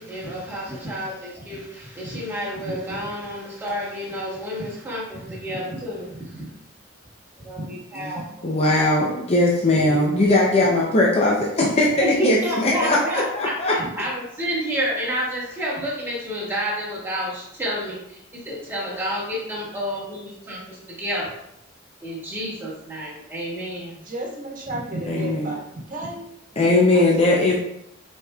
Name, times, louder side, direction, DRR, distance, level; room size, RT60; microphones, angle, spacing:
voice 1, 0.0-6.5 7.4-8.5 9.7-9.9 10.2-10.5 11.9-18.0 18.3-21.4 22.0-24.0 24.7-25.5 27.3-27.6, equal, 10° right, -7 dB, 1.6 m, -30 dB
voice 2, 8.4-12.4 12.6-13.7 25.1-25.5 26.6-27.6, left 2 dB, 30° left, -3 dB, 0.6 m, -19 dB
voice 3, 23.9-26.2 26.5-27.5, right 1 dB, 45° right, -3 dB, 1.4 m, -34 dB
5.0 x 4.4 x 2.3 m, 0.78 s
head